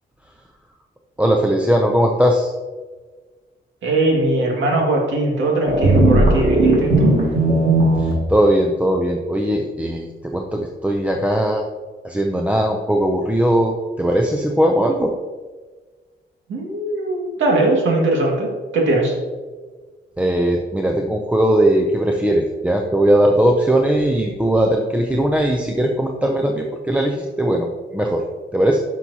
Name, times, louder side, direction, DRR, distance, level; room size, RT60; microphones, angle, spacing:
voice 1, 1.2-2.5 8.0-11.6 12.0-15.1 20.2-27.7 27.9-28.2 28.5-28.8, right 1 dB, 5° right, 1 dB, 0.4 m, -19 dB
voice 2, 3.8-7.1 16.5-19.1, right 2 dB, 90° right, -1 dB, 1.9 m, -20 dB
sound 1, 5.7-8.1, right 2 dB, 50° right, 1.9 m, -16 dB
10.0 x 6.0 x 2.8 m, 1.4 s
wide cardioid pair, 165°, 19 cm